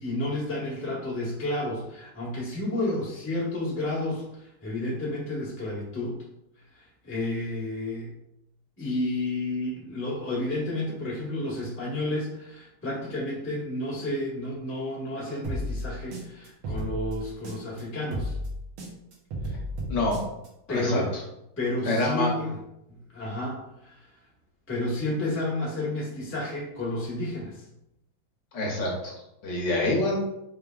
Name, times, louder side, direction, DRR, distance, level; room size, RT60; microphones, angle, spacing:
voice 1, 0.0-6.2 6.7-8.1 8.8-18.4 19.4-19.5 20.7-21.1 21.6-22.6 22.9-24.1 24.7-27.7, left 1 dB, 10° left, -6 dB, 0.7 m, -31 dB
sound 1, 15.4-17.8 18.1-20.5, equal, 80° right, 1.8 m, -33 dB
voice 2, 19.9-20.2 20.7-21.0 21.8-22.3 28.5-29.1 29.4-30.2, left 2 dB, 65° left, -3 dB, 1.3 m, -26 dB
4.8 x 3.4 x 2.3 m, 0.84 s
omnidirectional pair, 2.3 m